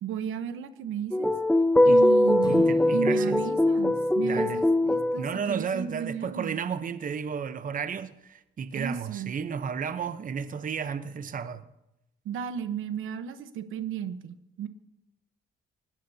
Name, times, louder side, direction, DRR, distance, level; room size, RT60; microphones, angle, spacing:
voice 1, 0.0-1.3 1.8-6.6 8.7-9.3 12.2-14.7, right 8 dB, 85° right, 1.1 m, -34 dB
sound 1, 1.1-5.3, left 1 dB, 5° left, 0.8 m, -22 dB
Acoustic guitar / Strum, 2.4-5.7, left 1 dB, 25° left, 3.5 m, -41 dB
voice 2, 2.5-3.4 4.2-4.6 5.2-11.7, right 6 dB, 40° right, 0.9 m, -33 dB
24.0 x 18.0 x 2.8 m
cardioid pair, 90°, 20 cm